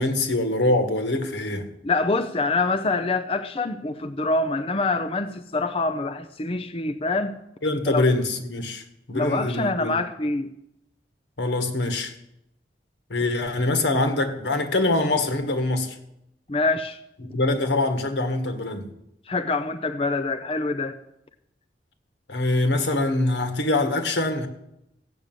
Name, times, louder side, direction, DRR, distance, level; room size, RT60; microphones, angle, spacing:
voice 1, 0.0-1.7 7.6-10.0 11.4-12.1 13.1-15.9 17.2-18.9 22.3-24.5, left 2 dB, 85° left, 1.7 m, -24 dB
voice 2, 1.8-7.4 7.9-8.1 9.1-10.5 16.5-17.0 19.3-21.0, left 3 dB, 30° left, 0.6 m, -25 dB
15.0 x 6.6 x 9.1 m
head